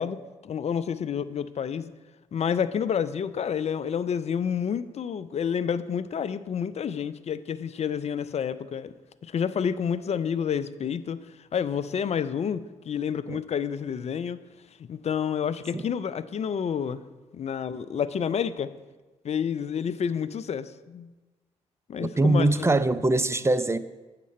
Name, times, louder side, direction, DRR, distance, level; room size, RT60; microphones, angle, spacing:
voice 1, 0.0-1.9 2.3-8.9 9.2-11.2 11.5-14.4 14.8-17.0 17.3-18.7 19.2-21.1 21.9-22.7, left 7 dB, 45° left, 0.5 m, -29 dB
voice 2, 22.0-23.8, right 2 dB, 20° right, 0.5 m, -23 dB
8.4 x 6.7 x 4.2 m
hypercardioid pair, 45°, 15 cm